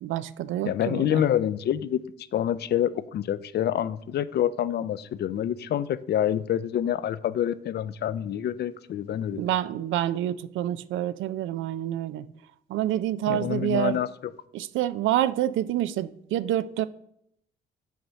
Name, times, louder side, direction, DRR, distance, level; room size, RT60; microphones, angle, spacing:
voice 1, 0.0-1.2 9.3-12.3 12.7-14.0 14.5-16.8, right 12 dB, 80° right, 0.4 m, -27 dB
voice 2, 0.7-2.0 2.3-9.4 13.3-14.1, left 10 dB, 55° left, 0.4 m, -27 dB
5.7 x 4.2 x 6.2 m
cardioid pair, 90°, 20 cm